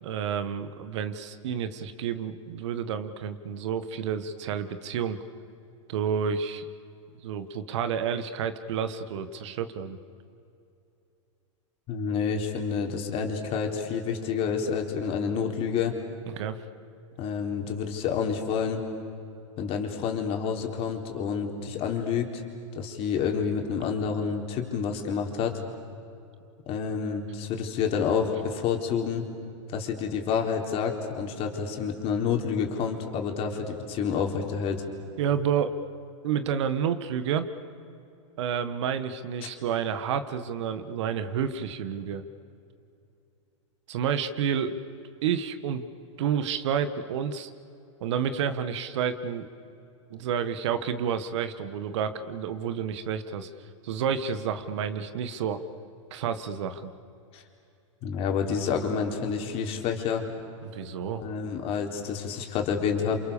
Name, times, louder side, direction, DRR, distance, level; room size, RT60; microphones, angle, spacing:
voice 1, 0.0-5.2 5.9-6.6 7.2-10.0 16.3-16.6 35.2-35.8 36.2-37.5 38.4-42.2 43.9-44.8 45.2-45.9 46.2-47.5 48.0-49.5 50.1-53.5 53.8-55.6 56.1-56.9 60.6-61.2, right 7 dB, 65° right, 11 dB, 1.7 m, -30 dB
voice 2, 11.9-15.9 17.2-18.8 19.6-22.3 22.8-25.6 26.7-29.2 29.7-34.8 57.3-57.4 58.0-60.3 61.2-63.2, left 6 dB, 35° left, 2 dB, 4.0 m, -28 dB
29.0 x 28.0 x 7.0 m, 2.6 s
hypercardioid pair, 125°, 16 cm